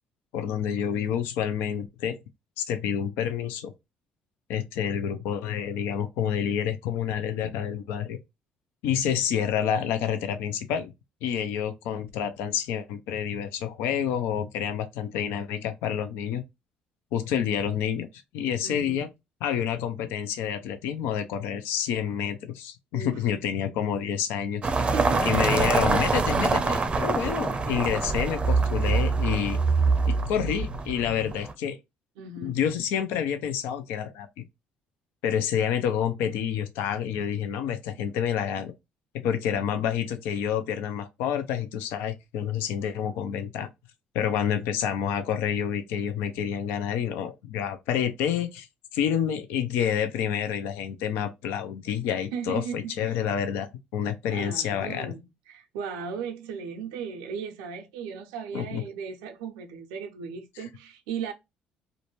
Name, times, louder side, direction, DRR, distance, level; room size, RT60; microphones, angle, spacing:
voice 1, 0.3-2.2 2.6-3.7 4.5-8.2 8.8-10.9 11.2-16.4 17.1-18.1 18.3-19.1 19.4-24.6 25.2-29.6 30.1-31.8 32.4-34.3 35.2-38.7 39.1-43.7 44.1-48.7 48.9-55.1 58.5-58.8, left 8 dB, 80° left, 0.4 m, -28 dB
voice 2, 18.6-19.0 22.9-23.2 24.8-25.5 32.2-32.6 39.7-39.9 52.3-53.2 54.3-61.3, right 6 dB, 85° right, 0.5 m, -37 dB
sound 1, 24.6-31.5, right 4 dB, 30° right, 0.5 m, -25 dB
2.5 x 2.2 x 3.0 m
supercardioid pair, 65°, 4 cm